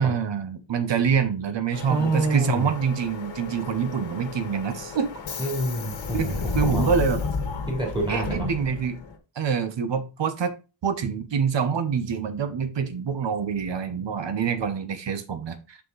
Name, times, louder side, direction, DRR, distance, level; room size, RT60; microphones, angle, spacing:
voice 1, 0.0-5.1 6.1-6.3 6.5-7.2 8.1-9.0 9.4-10.5 10.8-15.8, right 6 dB, 70° right, 10 dB, 0.9 m, -26 dB
Subway metro underground, 1.7-9.1, left 4 dB, 90° left, 1.6 m, -32 dB
voice 2, 1.7-2.7 5.4-6.9 7.7-8.5, right 2 dB, 10° right, -1 dB, 3.2 m, -28 dB
5.9 x 5.6 x 4.0 m, 0.30 s
wide cardioid pair, 165°, 46 cm